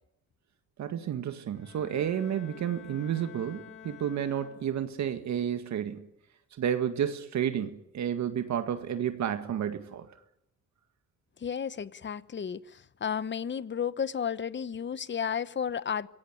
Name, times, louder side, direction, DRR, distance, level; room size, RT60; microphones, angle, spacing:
voice 1, 0.8-6.1 6.6-10.1, right 9 dB, 65° right, 2.0 m, -31 dB
Bowed string instrument, 1.5-5.0, left 9 dB, 90° left, 4.4 m, -50 dB
voice 2, 11.4-16.1, left 7 dB, 40° left, 1.1 m, -33 dB
26.0 x 17.5 x 10.0 m
cardioid pair, 90°, 30 cm